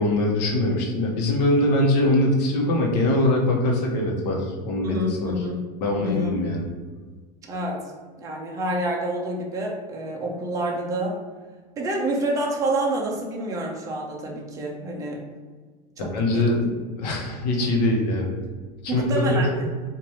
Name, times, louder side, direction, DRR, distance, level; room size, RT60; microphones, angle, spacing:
voice 1, 0.0-5.3 5.8-6.6 16.0-16.6 17.0-18.4 18.8-19.7, left 1 dB, 75° left, 0 dB, 0.9 m, -22 dB
voice 2, 4.8-5.6 6.0-6.3 7.5-7.8 8.2-11.2 11.8-15.2 16.0-16.5 18.9-19.5, right 1 dB, 15° right, -1 dB, 0.5 m, -27 dB
3.2 x 2.5 x 4.2 m, 1.5 s
supercardioid pair, 175°, 21 cm